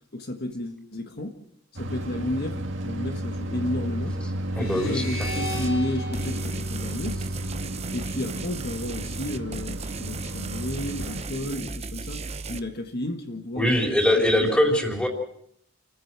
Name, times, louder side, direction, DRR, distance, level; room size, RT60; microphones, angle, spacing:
voice 1, 0.1-1.3 1.8-4.2 4.6-7.2 7.9-12.2 12.5-14.5, left 1 dB, 55° left, 5 dB, 1.6 m, -32 dB
sound 1, 1.8-11.2, right 1 dB, 65° right, 1.9 m, -33 dB
sound 2, 4.5-7.8, equal, 85° left, 4.6 m, -37 dB
voice 2, 4.6-5.0 13.6-15.1, left 1 dB, 5° left, 2 dB, 3.8 m, -22 dB
sound 3, 5.2-5.7 6.1-12.6, right 3 dB, 35° right, 1.0 m, -36 dB
29.0 x 15.0 x 6.2 m, 0.72 s
head